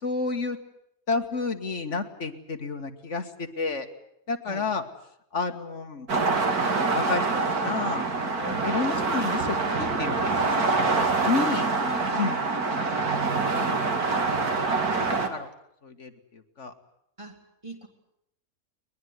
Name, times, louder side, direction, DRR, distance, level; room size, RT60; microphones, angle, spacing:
voice 1, 0.0-0.6 1.1-3.9 4.3-4.8 5.3-6.1 6.9-10.5 11.2-11.7 12.2-12.4 13.4-13.9 15.3-15.5 15.8-16.7, left 4 dB, 50° left, 7 dB, 2.0 m, -30 dB
sound 1, 6.1-15.3, right 3 dB, 75° right, 2.7 m, -25 dB
voice 2, 17.2-17.9, right 2 dB, 20° right, 3 dB, 3.4 m, -42 dB
21.5 x 21.5 x 9.6 m, 0.75 s
omnidirectional pair, 1.6 m